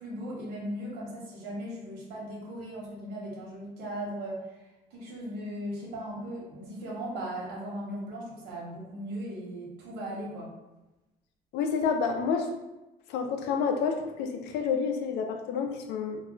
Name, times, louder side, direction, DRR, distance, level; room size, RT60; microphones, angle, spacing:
voice 1, 0.0-4.4 4.9-10.5, equal, 90° right, -3 dB, 0.9 m, -38 dB
voice 2, 11.5-12.5 13.1-16.2, left 6 dB, 85° left, 4 dB, 0.4 m, -29 dB
2.3 x 2.1 x 3.6 m, 1.0 s
cardioid pair, 110°, 17 cm